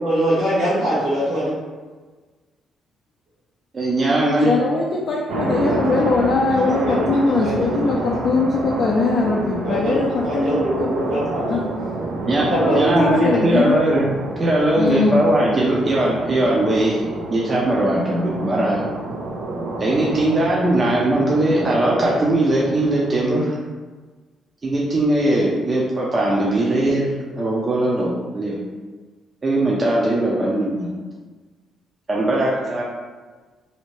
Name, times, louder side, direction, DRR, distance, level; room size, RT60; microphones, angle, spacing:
voice 1, 0.0-1.5 5.6-5.8 6.6-7.0 7.4-7.9 9.6-11.6 12.5-13.0, right 1 dB, 65° right, -12 dB, 1.0 m, -22 dB
voice 2, 3.7-4.5 12.3-12.5 12.7-14.1 14.4-17.0 17.3-18.8 19.8-23.6 24.6-27.1 27.3-28.6 29.4-30.9 32.1-32.8, right 1 dB, 35° right, -5 dB, 0.5 m, -19 dB
voice 3, 4.4-10.9 11.5-11.7 12.5-13.8 14.8-15.2, left 3 dB, 60° left, -2 dB, 0.3 m, -21 dB
sound 1, 5.3-23.4, right 2 dB, 90° right, 0.4 m, -29 dB
2.7 x 2.1 x 3.0 m, 1.4 s
cardioid pair, 90°, 0 cm